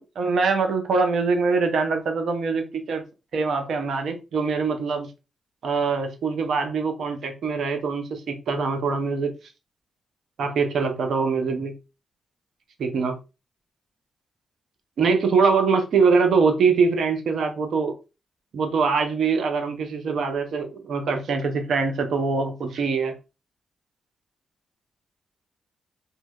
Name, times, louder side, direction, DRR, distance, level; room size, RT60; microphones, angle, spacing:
voice 1, 0.0-3.0 3.3-5.1 5.6-9.3 10.4-11.7 12.8-13.2 15.0-18.0 18.5-23.2, right 4 dB, 70° right, 0.5 m, -23 dB
2.7 x 2.0 x 2.2 m
supercardioid pair, 50°, 0 cm